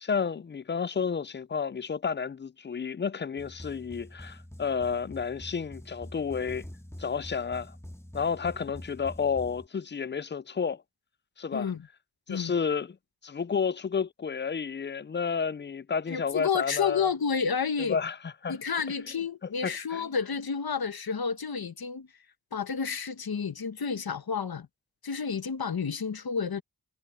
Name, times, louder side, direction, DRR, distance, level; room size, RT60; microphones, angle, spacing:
voice 1, 0.0-6.7 7.0-7.8 8.1-10.8 11.4-11.7 12.3-13.0 13.2-17.1 17.9-18.6 19.6-20.1, left 6 dB, 30° left, 0.4 m, -31 dB
sound 1, 3.4-9.7, equal, 5° left, 2.1 m, -45 dB
voice 2, 11.5-11.9 12.3-12.5 16.1-18.0 18.5-22.1 22.5-24.7 25.0-26.6, left 6 dB, 75° left, 1.2 m, -30 dB
wide cardioid pair, 55°, 37 cm